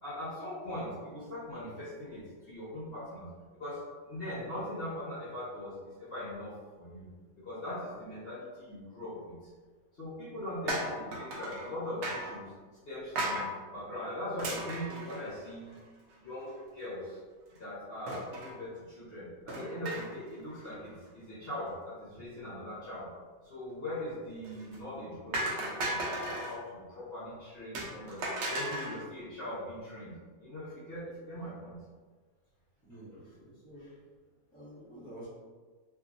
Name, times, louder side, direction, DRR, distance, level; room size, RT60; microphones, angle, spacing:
voice 1, 0.0-3.3 3.5-7.1 7.4-9.3 9.9-12.5 12.8-15.7 16.2-17.2 17.6-23.1 23.4-30.1 30.4-31.8, left 1 dB, 45° left, -11 dB, 1.1 m, -41 dB
sound 1, 10.7-11.7 12.0-12.4 13.1-13.5 14.4-15.7 16.1-16.2 16.5-16.6 18.1-18.6 19.5-20.3 20.6-20.9 24.4-24.8 25.3-26.6 27.7-29.0, right 1 dB, 60° right, 0.9 m, -35 dB
voice 2, 32.8-33.9 34.5-35.3, right 1 dB, 5° left, -11 dB, 1.1 m, -49 dB
2.8 x 2.6 x 2.5 m, 1.4 s
omnidirectional pair, 1.5 m